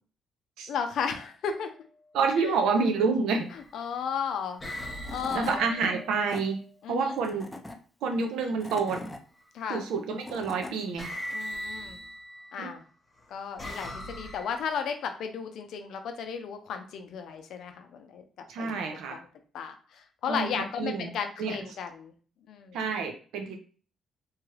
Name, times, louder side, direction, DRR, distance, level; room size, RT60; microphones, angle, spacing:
voice 1, 0.7-1.7 2.4-2.5 3.7-4.6 5.1-5.6 6.8-7.2 9.5-9.9 11.3-12.0 12.5-12.8 13.3-18.2 18.6-18.9 19.1-19.3 19.5-22.1 22.5-22.8, left 6 dB, 75° left, 6 dB, 0.5 m, -34 dB
voice 2, 2.1-3.5 5.3-6.6 6.9-7.5 8.0-9.0 9.7-11.1 12.6-12.7 18.5-19.2 20.3-20.5 20.8-21.1 21.4-21.6 22.7-23.6, right 4 dB, 85° right, 5 dB, 0.6 m, -28 dB
sound 1, 2.3-2.6 3.5-4.0 4.6-6.6 8.8-9.4 10.4-10.6 11.0-12.6 13.2-14.9, equal, 25° left, 1.0 m, -40 dB
Tools / Wood, 4.7-4.8 5.0-5.6 6.1-6.4 7.2-7.8 8.4-9.2 9.9-10.7, left 2 dB, 10° left, 0.5 m, -40 dB
2.9 x 2.3 x 3.2 m, 0.40 s
cardioid pair, 90°, 0 cm